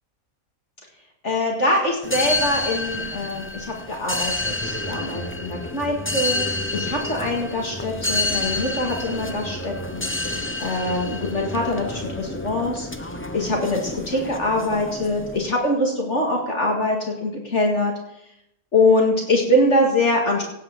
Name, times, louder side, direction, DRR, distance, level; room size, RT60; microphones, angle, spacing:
voice 1, 1.2-6.5 6.7-10.1 10.6-12.9 13.3-17.9 18.7-20.4, left 1 dB, 50° left, -1 dB, 2.3 m, -23 dB
sound 1, 2.0-15.5, left 2 dB, 10° left, 0.6 m, -29 dB
17.5 x 5.8 x 7.1 m, 0.82 s
omnidirectional pair, 1.5 m